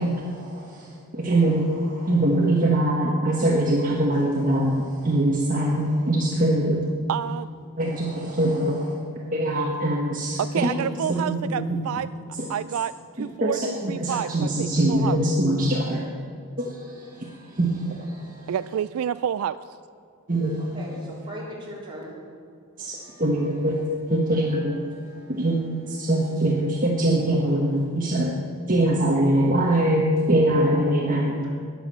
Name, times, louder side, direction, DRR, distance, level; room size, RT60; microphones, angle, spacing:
voice 1, 0.0-6.8 7.8-10.8 11.2-11.6 12.4-12.5 13.4-16.0 16.6-18.4 20.3-20.7 22.8-23.8 24.1-25.0 25.3-28.3 28.7-31.4, right 1 dB, 40° right, -2 dB, 1.3 m, -23 dB
voice 2, 7.1-7.5 10.4-12.1 12.5-15.2 18.5-19.6, right 9 dB, 70° right, 14 dB, 0.3 m, -29 dB
voice 3, 20.6-22.1 31.4-31.5, equal, 20° right, -5 dB, 3.7 m, -38 dB
20.0 x 7.4 x 7.5 m, 2.4 s
head